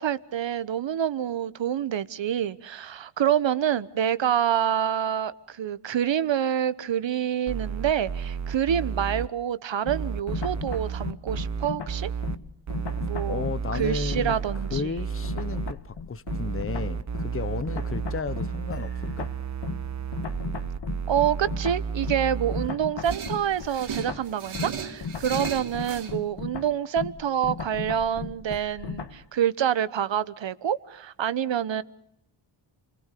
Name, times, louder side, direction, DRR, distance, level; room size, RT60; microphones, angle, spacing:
voice 1, 0.0-12.1 13.0-13.5 13.7-14.9 21.1-31.8, right 9 dB, 65° right, 1.2 m, -27 dB
sound 1, 7.5-9.3 9.9-12.4 12.7-15.7 16.3-22.7 23.1-23.2, right 6 dB, 35° right, 0.9 m, -32 dB
sound 2, 9.8-15.0 15.2-29.2, left 6 dB, 55° left, 2.0 m, -37 dB
voice 2, 13.3-14.4 14.7-18.9 19.2-19.3, left 5 dB, 25° left, 1.0 m, -33 dB
sound 3, 23.0-26.1, right 7 dB, 80° right, 3.3 m, -36 dB
29.0 x 21.0 x 6.8 m
cardioid pair, 105°, 49 cm